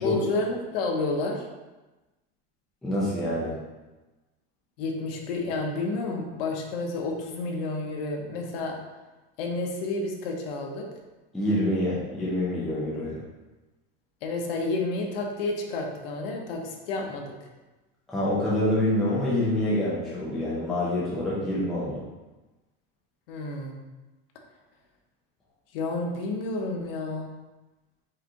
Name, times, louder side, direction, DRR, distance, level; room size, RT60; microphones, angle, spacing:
voice 1, 0.0-1.5 4.8-8.8 9.4-10.9 14.2-17.3 23.3-23.8 25.7-27.3, left 3 dB, 65° left, 1 dB, 0.9 m, -30 dB
voice 2, 2.8-3.5 11.3-13.2 18.1-21.9, left 1 dB, ahead, -8 dB, 0.4 m, -26 dB
4.9 x 3.5 x 2.9 m, 1.1 s
supercardioid pair, 180°, 31 cm